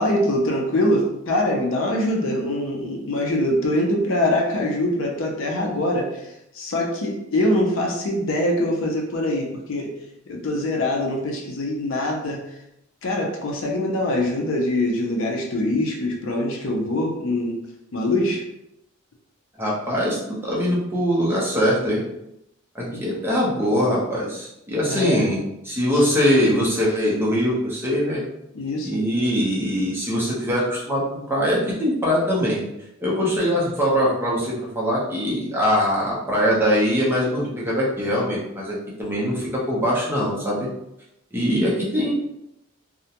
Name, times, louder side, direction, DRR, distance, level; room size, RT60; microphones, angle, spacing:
voice 1, 0.0-6.2 6.5-9.9 10.3-12.4 13.0-17.6 17.9-18.4 22.9-23.0 24.9-25.3 25.9-26.0 28.5-29.0 41.4-41.6, left 1 dB, 65° left, 1 dB, 0.5 m, -23 dB
voice 2, 19.6-22.0 22.7-28.2 28.8-31.0 31.3-32.6 33.0-40.7 41.3-42.1, equal, 10° right, -5 dB, 0.6 m, -22 dB
2.4 x 2.1 x 2.8 m, 0.83 s
head